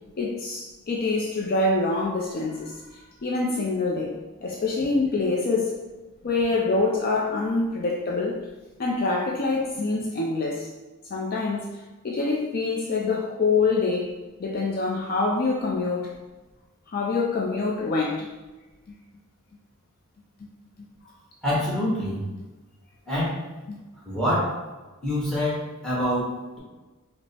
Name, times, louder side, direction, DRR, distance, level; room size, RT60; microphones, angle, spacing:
voice 1, 0.2-5.8 6.2-8.5 8.8-10.7 11.1-11.7 12.0-14.1 14.4-16.1 16.9-18.3 23.7-23.8, left 3 dB, 45° left, -2 dB, 0.4 m, -25 dB
voice 2, 21.4-22.3 23.1-23.4 24.1-24.6 25.0-26.6, equal, ahead, -7 dB, 1.2 m, -26 dB
5.0 x 2.0 x 3.4 m, 1.2 s
head